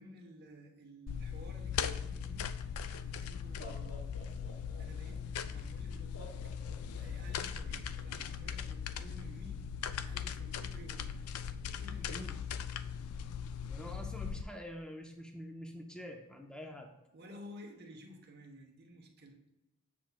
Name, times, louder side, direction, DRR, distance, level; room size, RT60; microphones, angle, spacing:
voice 1, 0.0-2.5 2.8-4.0 4.8-6.1 7.0-9.6 10.1-11.1 11.7-12.2 17.1-19.4, equal, 45° right, 2 dB, 1.0 m, -53 dB
sound 1, 1.1-14.4, left 7 dB, 85° left, 0.3 m, -39 dB
Laughter, 3.4-5.2 6.1-7.4, left 1 dB, 65° left, 1.5 m, -51 dB
voice 2, 13.7-16.9, equal, 5° left, 2 dB, 0.6 m, -46 dB
7.3 x 7.2 x 2.2 m, 0.98 s
head